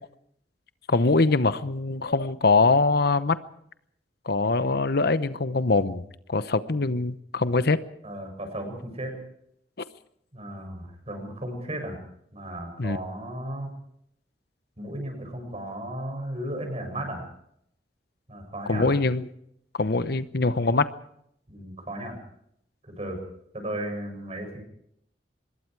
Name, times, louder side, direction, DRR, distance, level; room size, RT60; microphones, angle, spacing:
voice 1, 0.9-3.4 4.2-6.0 6.3-7.8 12.8-13.0 18.7-19.3 19.8-20.9, left 3 dB, 60° left, 13 dB, 0.9 m, -23 dB
voice 2, 8.0-9.2 10.3-12.0 12.3-13.7 14.8-17.3 18.3-18.9 21.5-22.1 22.9-23.2 23.5-24.6, right 1 dB, 35° right, 4 dB, 7.5 m, -35 dB
25.5 x 21.5 x 4.8 m, 0.71 s
head